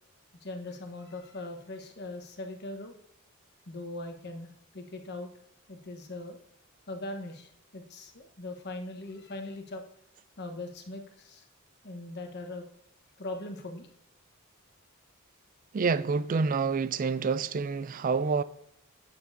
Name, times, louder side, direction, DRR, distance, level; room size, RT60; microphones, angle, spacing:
voice 1, 0.4-3.0 3.7-5.3 5.7-6.4 6.9-9.8 10.4-11.4 11.8-12.6 13.2-13.9, left 2 dB, 50° left, 1.1 m, -40 dB
voice 2, 15.7-18.4, right 5 dB, 40° right, 0.3 m, -27 dB
8.9 x 7.2 x 2.7 m
head